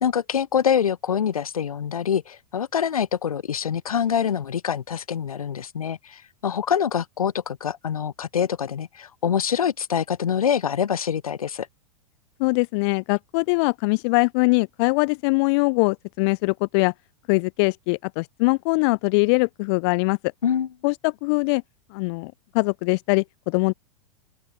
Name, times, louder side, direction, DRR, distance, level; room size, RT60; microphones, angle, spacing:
voice 1, 0.0-11.7 20.4-20.7, left 8 dB, 85° left, 1.1 m, -25 dB
voice 2, 12.4-16.9 17.3-20.2 20.8-21.6 21.9-23.7, left 29 dB, 50° left, 0.5 m, -22 dB
open air
hypercardioid pair, 100°, 18 cm